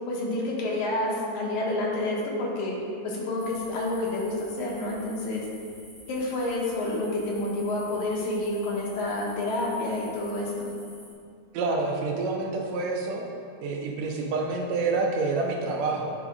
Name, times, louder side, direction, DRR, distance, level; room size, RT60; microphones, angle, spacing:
voice 1, 0.1-2.7 3.0-5.4 6.1-10.7, left 2 dB, 85° left, -2 dB, 2.4 m, -29 dB
sound 1, 3.4-11.1, equal, 25° left, 1.0 m, -50 dB
voice 2, 11.5-13.2 13.6-16.1, right 3 dB, 75° right, 1 dB, 1.8 m, -28 dB
8.8 x 3.6 x 3.5 m, 2.3 s
omnidirectional pair, 3.3 m